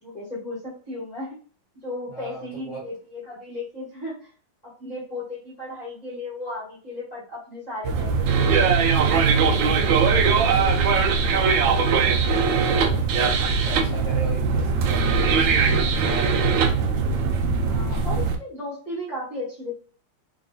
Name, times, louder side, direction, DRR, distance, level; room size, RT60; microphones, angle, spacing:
voice 1, 0.0-1.4 1.8-4.3 4.6-8.9 17.7-19.7, left 2 dB, 20° left, -10 dB, 1.4 m, -35 dB
voice 2, 2.1-2.9 10.1-13.4 13.6-16.7, right 2 dB, 25° right, -8 dB, 1.5 m, -38 dB
sound 1, 7.9-18.4, right 5 dB, 75° right, 1.2 m, -20 dB
3.5 x 3.1 x 2.7 m, 0.41 s
omnidirectional pair, 2.4 m